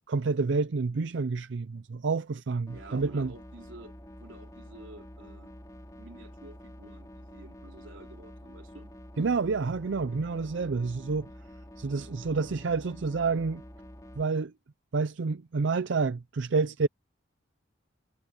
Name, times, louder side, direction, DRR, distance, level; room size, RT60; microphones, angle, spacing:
voice 1, 0.1-3.3 9.2-11.3 11.8-13.6 14.2-14.5 14.9-16.9, right 4 dB, 65° right, 0.5 m, -28 dB
sound 1, 2.7-14.2, equal, 15° left, 6.1 m, -48 dB
voice 2, 2.7-3.9 4.2-5.6 6.0-8.9, right 2 dB, 85° right, 3.0 m, -50 dB
head